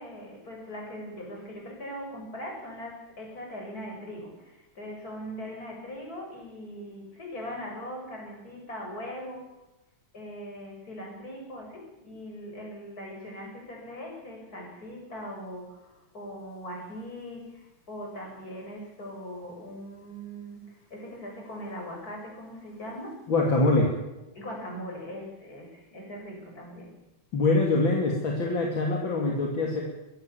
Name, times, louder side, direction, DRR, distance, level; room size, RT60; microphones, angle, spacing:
voice 1, 0.0-9.5 10.1-23.2 24.3-27.0, equal, 45° left, 0 dB, 7.8 m, -40 dB
voice 2, 23.3-23.9 27.3-29.8, left 2 dB, 70° left, 0 dB, 3.6 m, -24 dB
22.5 x 17.0 x 7.2 m, 1.0 s
omnidirectional pair, 2.2 m